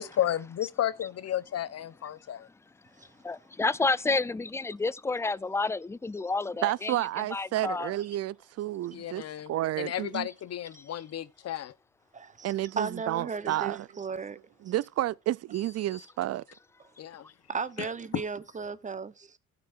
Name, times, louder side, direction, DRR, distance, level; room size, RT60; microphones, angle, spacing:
voice 1, 0.0-2.5 8.9-11.7 17.0-17.2, left 11 dB, 55° left, 0.8 m, -33 dB
voice 2, 3.2-7.0 7.3-7.9 10.8-10.9 15.9-16.0, left 3 dB, 10° left, 0.3 m, -30 dB
voice 3, 6.6-10.3 12.4-13.9 14.6-16.4, right 14 dB, 55° right, 0.4 m, -31 dB
voice 4, 12.1-14.4 14.7-14.8 17.5-19.4, right 5 dB, 25° right, 0.8 m, -36 dB
16.0 x 6.1 x 2.5 m
cardioid pair, 90°, 30 cm